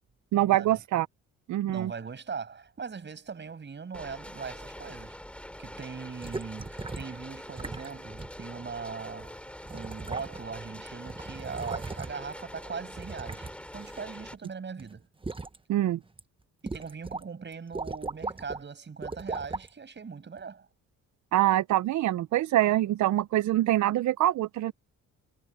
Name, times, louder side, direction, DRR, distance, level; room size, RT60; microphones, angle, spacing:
voice 1, 0.3-1.1 1.5-1.9 15.7-16.0 21.3-24.7, right 14 dB, 70° right, 0.7 m, -25 dB
voice 2, 1.7-5.2 5.6-15.1 16.7-20.7, right 5 dB, 35° right, 6.5 m, -40 dB
sound 1, 3.9-14.3, left 1 dB, 5° left, 4.3 m, -44 dB
sound 2, 6.2-7.2 7.6-7.9 8.2-8.3 9.2-9.3 9.6-10.6 10.9-12.3 12.9-14.5 14.8-15.6 16.0-16.2 16.7-17.2 17.5-18.6 19.0-19.7 20.4-20.5, right 3 dB, 15° right, 1.3 m, -38 dB
cardioid pair, 90°, 30 cm